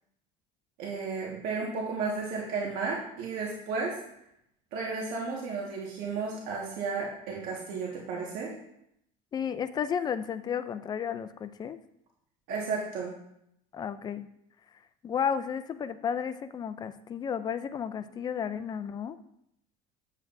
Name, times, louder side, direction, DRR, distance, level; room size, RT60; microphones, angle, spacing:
voice 1, 0.8-4.0 4.7-8.5 12.5-13.1, right 4 dB, 65° right, -3 dB, 1.6 m, -33 dB
voice 2, 9.3-11.8 13.7-14.3 15.0-19.2, left 7 dB, 25° left, 12 dB, 0.4 m, -33 dB
9.2 x 7.3 x 2.6 m, 0.76 s
cardioid pair, 145°, 17 cm